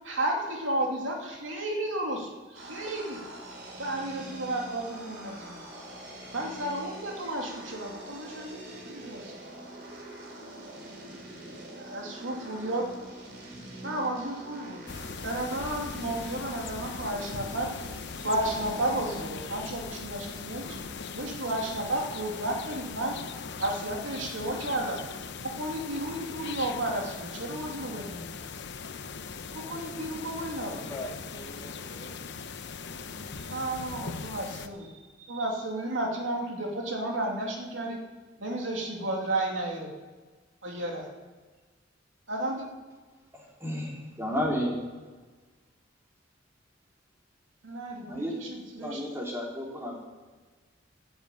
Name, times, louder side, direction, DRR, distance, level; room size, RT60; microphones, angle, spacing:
voice 1, 0.0-3.2 3.8-5.8 6.3-9.3 11.8-12.9 13.8-14.8 15.2-17.7 18.2-20.8 21.1-23.2 23.6-25.0 25.4-28.4 29.5-30.8 33.5-34.9 35.2-38.0 38.4-39.9 40.6-41.1 42.3-42.7 47.6-48.5 48.7-49.0, right 1 dB, 80° right, 0 dB, 2.8 m, -32 dB
sound 1, 2.5-19.2, right 1 dB, 60° right, 3.6 m, -44 dB
sound 2, 14.9-34.7, left 5 dB, 65° left, 0.8 m, -40 dB
voice 2, 30.5-32.9, left 1 dB, 20° left, 0 dB, 2.2 m, -44 dB
voice 3, 43.3-44.8 48.1-48.4 48.8-50.1, equal, 15° right, -3 dB, 3.6 m, -32 dB
15.0 x 7.9 x 8.6 m, 1.4 s
head